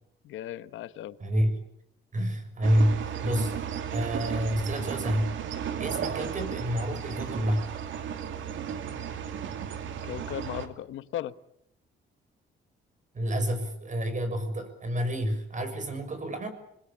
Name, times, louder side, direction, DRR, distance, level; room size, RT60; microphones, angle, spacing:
voice 1, 0.2-1.2 10.0-11.3, left 12 dB, 80° left, 14 dB, 1.2 m, -36 dB
voice 2, 1.2-1.6 2.1-3.5 3.9-5.3 5.8-7.6 13.1-16.5, equal, 40° right, 9 dB, 6.6 m, -28 dB
sound 1, 2.6-10.7, right 8 dB, 75° right, 2.5 m, -34 dB
26.5 x 20.5 x 8.7 m, 0.76 s
cardioid pair, 90°, 20 cm